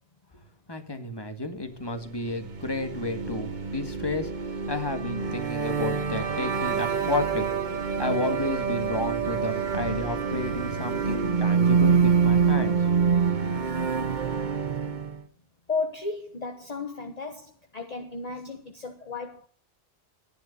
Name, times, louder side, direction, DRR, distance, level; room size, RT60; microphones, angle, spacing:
voice 1, 0.7-4.3 4.7-7.6 8.0-12.8, left 2 dB, 25° left, 8 dB, 1.8 m, -32 dB
sound 1, 2.2-15.2, right 6 dB, 50° right, 1.2 m, -26 dB
voice 2, 10.7-11.0 15.7-19.5, left 4 dB, 40° left, 5 dB, 1.3 m, -34 dB
14.0 x 10.5 x 6.6 m, 0.43 s
omnidirectional pair, 1.1 m